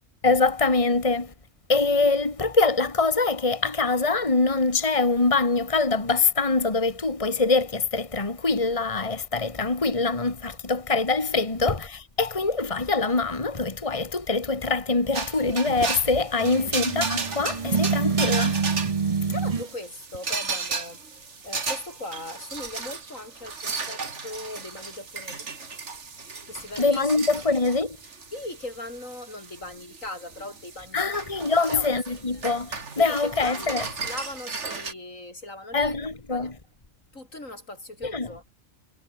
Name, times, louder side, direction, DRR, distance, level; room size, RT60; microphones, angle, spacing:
voice 1, 0.2-1.3 1.7-18.6 26.8-28.0 30.9-33.9 35.7-36.6 38.0-38.3, left 3 dB, 25° left, 2.2 m, -24 dB
sound 1, 15.1-34.9, right 4 dB, 65° right, 2.5 m, -35 dB
sound 2, 16.4-19.7, right 5 dB, 30° right, 0.8 m, -26 dB
voice 2, 19.1-21.0 21.4-25.5 26.5-27.1 28.3-31.2 31.5-32.4 33.0-36.0 36.3-36.5 37.1-38.4, left 2 dB, 85° left, 7.4 m, -39 dB
omnidirectional pair, 1.3 m